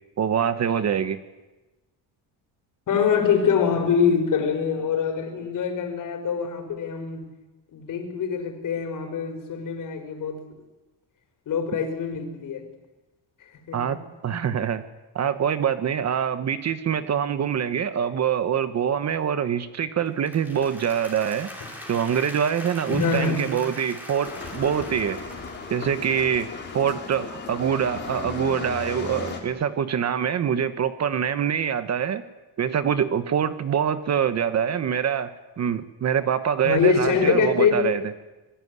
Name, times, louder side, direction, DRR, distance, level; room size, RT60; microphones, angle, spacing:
voice 1, 0.2-1.2 13.7-14.0 14.2-14.8 15.1-21.5 21.9-25.2 25.7-26.5 26.7-32.2 32.6-38.0, right 8 dB, 40° right, 11 dB, 1.2 m, -25 dB
voice 2, 2.9-7.2 7.7-10.4 11.5-12.6 13.7-14.0 22.9-23.5 36.6-38.0, left 6 dB, 45° left, 5 dB, 5.3 m, -24 dB
Applause, 20.1-26.3, equal, 5° right, 6.1 m, -41 dB
sound 1, 24.2-29.4, left 4 dB, 25° left, 4.3 m, -35 dB
26.0 x 21.0 x 9.7 m, 1.1 s
cardioid pair, 155°, 42 cm